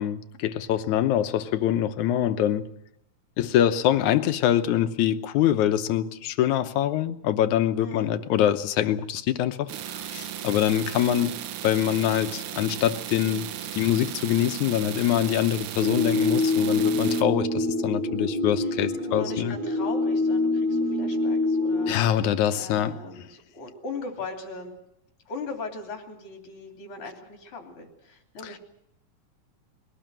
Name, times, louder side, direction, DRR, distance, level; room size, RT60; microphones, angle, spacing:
voice 1, 0.0-2.7 3.4-11.3 11.6-19.6 21.9-23.0 28.4-28.6, left 11 dB, 80° left, 10 dB, 2.3 m, -24 dB
voice 2, 7.8-8.1 18.6-22.0 22.5-24.7 25.3-28.6, left 3 dB, 45° left, 2 dB, 3.7 m, -39 dB
sound 1, 9.7-17.2, right 11 dB, 85° right, 2.5 m, -36 dB
sound 2, 15.8-21.9, left 2 dB, 45° right, 1.7 m, -25 dB
22.0 x 18.0 x 7.6 m, 0.79 s
omnidirectional pair, 3.4 m